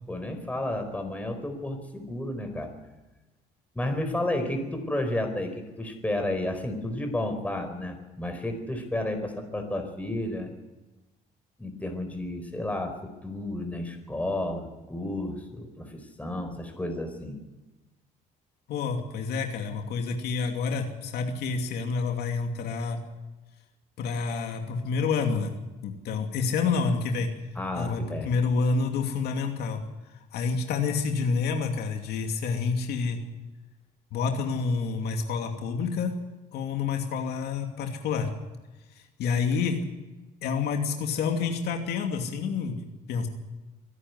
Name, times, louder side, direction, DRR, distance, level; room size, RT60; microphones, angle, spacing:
voice 1, 0.1-2.7 3.7-10.5 11.6-13.0 13.2-17.4 27.5-28.3, left 1 dB, 10° left, 5 dB, 4.4 m, -32 dB
voice 2, 18.7-23.0 24.0-25.5 25.8-27.3 27.8-29.8 30.3-33.2 34.1-36.1 36.5-38.3 39.2-39.8 40.4-43.3, left 5 dB, 75° left, 4 dB, 2.7 m, -28 dB
24.0 x 11.5 x 9.7 m, 1.1 s
cardioid pair, 110°, 17 cm